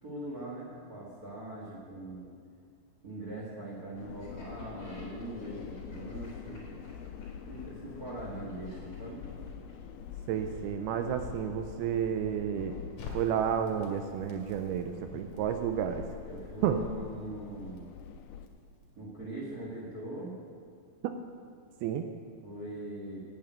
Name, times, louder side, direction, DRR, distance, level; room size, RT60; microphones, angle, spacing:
voice 1, 0.0-2.3 3.0-6.6 7.5-9.2 16.2-17.9 19.0-20.3 22.4-23.2, right 1 dB, 65° right, -4 dB, 0.9 m, -41 dB
sound 1, 4.0-18.5, left 7 dB, 80° left, 2.5 m, -45 dB
Laughter, 4.2-9.9, left 1 dB, 25° left, 3.7 m, -57 dB
voice 2, 10.3-12.8 13.1-16.1 16.6-16.8 21.0-21.1 21.8-22.1, right 9 dB, 80° right, 7 dB, 2.4 m, -31 dB
Crackle, 13.0-19.1, left 4 dB, 60° left, 3.7 m, -50 dB
9.8 x 8.7 x 9.1 m, 2.2 s
omnidirectional pair, 4.8 m